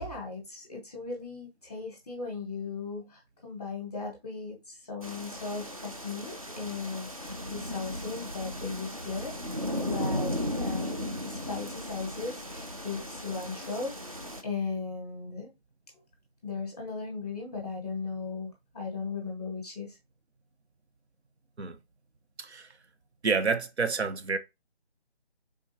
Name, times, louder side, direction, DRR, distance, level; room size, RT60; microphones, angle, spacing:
voice 1, 0.0-9.3 9.8-15.5 16.4-20.0, left 4 dB, 10° left, 0.8 m, -37 dB
sound 1, 5.0-14.4, equal, 35° right, 0.4 m, -36 dB
voice 2, 22.4-22.7 23.2-24.4, right 4 dB, 85° right, 0.8 m, -29 dB
4.5 x 3.6 x 2.7 m
figure-of-eight pair, 160°, 32 cm